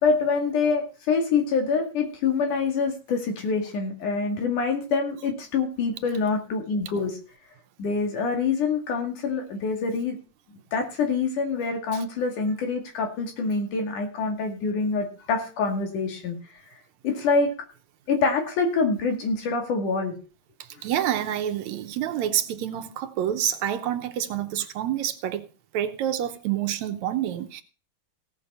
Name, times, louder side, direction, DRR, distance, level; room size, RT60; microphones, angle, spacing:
voice 1, 0.0-7.2 7.8-10.2 10.7-16.4 17.0-17.5 18.1-20.2, left 4 dB, 80° left, 3.9 m, -25 dB
voice 2, 20.8-25.5 25.7-27.6, right 11 dB, 75° right, 2.0 m, -28 dB
17.0 x 6.2 x 5.5 m
omnidirectional pair, 3.5 m